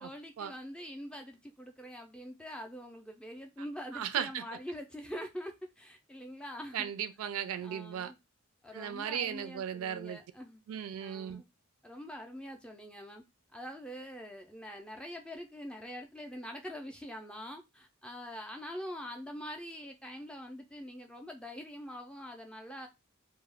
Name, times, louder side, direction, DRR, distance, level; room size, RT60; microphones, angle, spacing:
voice 1, 0.0-6.9 7.6-8.2 8.6-10.6 11.0-11.5 11.8-13.2 13.5-22.9, equal, 5° left, 0.3 m, -44 dB
voice 2, 3.9-4.4 6.7-8.1 8.7-10.2 10.7-11.4, right 9 dB, 80° right, 0.3 m, -36 dB
2.3 x 2.1 x 3.3 m
head